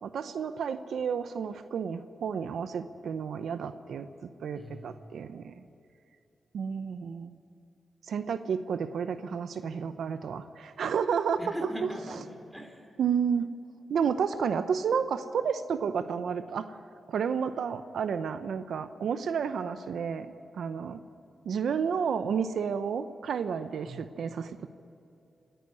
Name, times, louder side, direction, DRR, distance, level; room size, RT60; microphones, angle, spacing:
voice 1, 0.0-5.5 6.5-7.4 8.1-11.7 13.0-13.5 13.9-16.8 17.1-21.0 21.5-24.7, right 6 dB, 80° right, 11 dB, 0.7 m, -31 dB
voice 2, 4.5-5.1 11.4-12.8 23.9-24.0, equal, ahead, 3 dB, 3.4 m, -40 dB
28.0 x 10.0 x 9.7 m, 2.6 s
cardioid pair, 70°, 0 cm